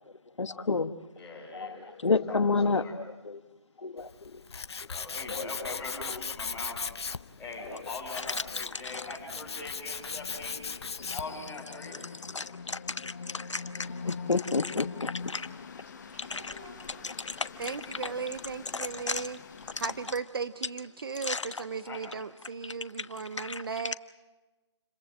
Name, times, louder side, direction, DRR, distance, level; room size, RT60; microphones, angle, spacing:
voice 1, 0.4-0.9 1.5-1.7 2.0-3.4 3.8-4.4 5.3-5.7 6.1-6.2 7.7-7.8 8.8-9.0 11.0-11.2 12.3-15.5 16.3-16.4 17.0-17.8 18.0-18.1 18.7-19.3 21.2-21.5 23.0-23.1 23.4-23.6, left 4 dB, 90° left, 11 dB, 1.3 m, -31 dB
voice 2, 1.2-2.0 2.3-3.0 4.9-6.8 7.4-10.7 11.1-12.0 21.8-22.4, left 3 dB, 5° left, -6 dB, 6.1 m, -42 dB
Tools, 4.0-11.4, left 5 dB, 65° left, 0.8 m, -38 dB
sound 1, 5.8-20.2, left 5 dB, 40° left, 1.0 m, -45 dB
voice 3, 15.8-17.1 21.5-21.9, equal, 25° right, 1 dB, 6.0 m, -53 dB
voice 4, 17.6-19.4 19.8-23.9, right 5 dB, 50° right, 13 dB, 0.8 m, -36 dB
29.5 x 16.0 x 7.7 m, 1.2 s
figure-of-eight pair, 165°, 15 cm